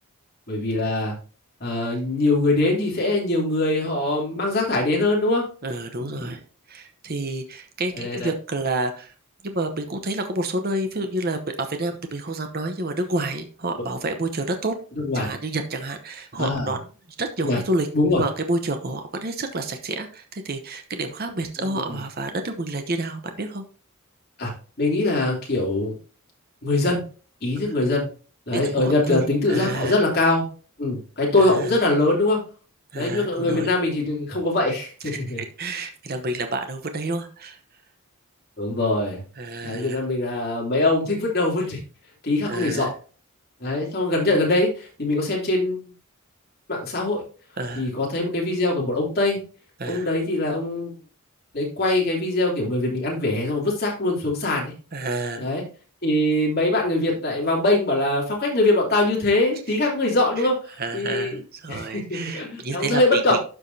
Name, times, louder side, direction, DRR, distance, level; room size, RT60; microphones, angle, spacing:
voice 1, 0.5-1.1 1.6-5.5 6.1-6.3 7.9-8.3 15.0-15.3 16.4-16.7 17.4-17.6 17.9-18.2 21.6-22.0 24.4-24.5 24.8-26.0 26.6-27.0 27.4-28.1 28.5-30.4 30.8-32.4 32.9-35.4 38.6-39.2 39.6-41.8 42.2-42.9 43.6-45.8 46.7-47.2 47.7-49.4 49.8-51.0 51.5-54.7 55.4-55.6 56.0-60.6 60.9-61.4 61.7-63.4, left 2 dB, 45° left, -3 dB, 3.0 m, -23 dB
voice 2, 5.6-6.4 6.7-9.1 9.4-14.7 15.1-16.8 17.2-17.9 18.1-23.6 28.8-30.0 31.4-31.8 32.9-33.7 35.0-37.6 39.4-40.0 42.5-42.9 47.6-47.9 49.8-50.1 54.9-55.4 59.7-59.8 60.4-60.5 60.8-63.4, right 2 dB, 45° right, 6 dB, 0.9 m, -29 dB
12.5 x 4.9 x 2.8 m, 0.38 s
head